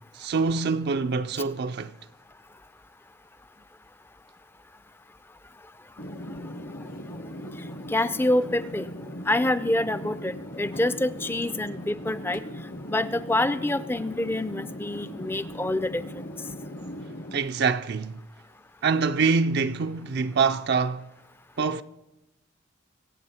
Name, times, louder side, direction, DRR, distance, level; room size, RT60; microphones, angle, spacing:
voice 1, 0.2-1.9 17.3-18.1 18.8-21.1 21.6-21.8, right 5 dB, 50° right, 0.4 m, -25 dB
sound 1, 6.0-17.4, equal, 45° left, 0.8 m, -39 dB
voice 2, 7.9-8.9 9.3-12.4 12.9-16.0, left 1 dB, 10° left, 0.4 m, -26 dB
24.0 x 8.6 x 4.3 m
head